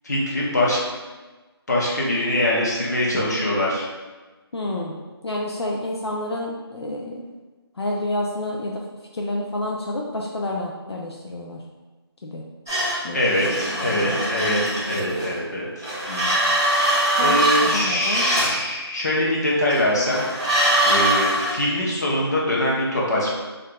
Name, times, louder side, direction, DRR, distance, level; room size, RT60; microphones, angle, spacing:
voice 1, 0.0-0.8 1.7-3.9 13.1-14.6 14.9-15.9 17.2-20.2 20.8-23.3, left 1 dB, 40° left, -5 dB, 0.8 m, -23 dB
voice 2, 4.5-4.9 5.2-7.2 7.8-8.8 9.1-11.6 12.2-12.4 13.0-13.2 13.6-14.0 16.1-16.4 17.1-18.2, left 1 dB, 75° left, -1 dB, 0.5 m, -29 dB
sound 1, 12.7-15.3 15.8-18.6 19.7-21.5, right 1 dB, 5° right, 0.5 m, -22 dB
4.4 x 2.5 x 2.2 m, 1.3 s
figure-of-eight pair, 170°, 14 cm